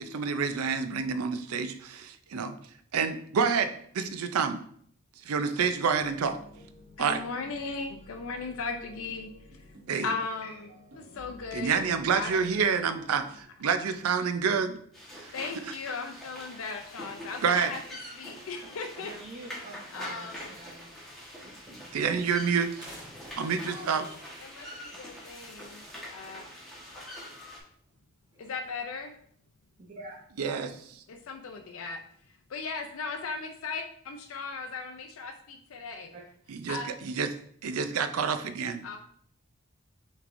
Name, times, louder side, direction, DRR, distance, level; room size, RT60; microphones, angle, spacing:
voice 1, 0.0-2.6 2.9-4.6 5.2-6.4 7.0-7.2 9.9-10.1 11.5-14.8 15.2-15.3 17.4-17.7 21.9-22.9 23.4-24.1 30.4-30.8 36.5-37.3 37.6-38.8, right 6 dB, 90° right, 9 dB, 0.5 m, -28 dB
sound 1, 6.0-13.4, equal, 70° right, 1.2 m, -53 dB
voice 2, 7.0-9.8 10.0-11.8 12.1-12.4 15.3-17.8 18.1-19.1 19.9-20.4 23.6-24.1 24.4-25.8 26.1-26.4 28.4-29.1 31.1-32.0 32.5-36.1 36.7-36.9 38.8-39.0, left 4 dB, 70° left, 5 dB, 0.4 m, -37 dB
sound 2, 14.9-27.6, left 1 dB, ahead, 1.2 m, -45 dB
voice 3, 19.0-20.9 29.8-30.2 36.1-36.2, right 2 dB, 35° right, -2 dB, 0.6 m, -45 dB
sound 3, 21.2-22.5 22.8-25.4 25.8-25.9 26.2-26.3 27.4-27.9 28.3-29.0 30.1-30.6, right 1 dB, 20° right, 1.1 m, -52 dB
6.5 x 3.2 x 2.5 m, 0.63 s
head